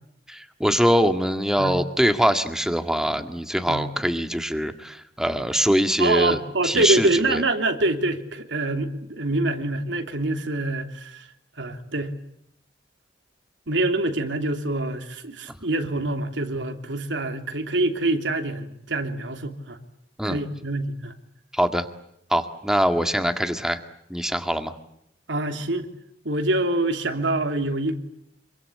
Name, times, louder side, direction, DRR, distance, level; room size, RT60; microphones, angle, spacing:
voice 1, 0.3-7.4 20.2-20.4 21.5-21.9 22.3-23.8 24.1-24.7, equal, 5° right, 7 dB, 1.9 m, -23 dB
voice 2, 6.0-11.2 11.6-12.1 13.7-19.8 20.2-21.1 25.3-25.9 26.2-28.0, right 2 dB, 85° right, 5 dB, 3.1 m, -25 dB
27.0 x 24.5 x 8.5 m, 0.76 s
head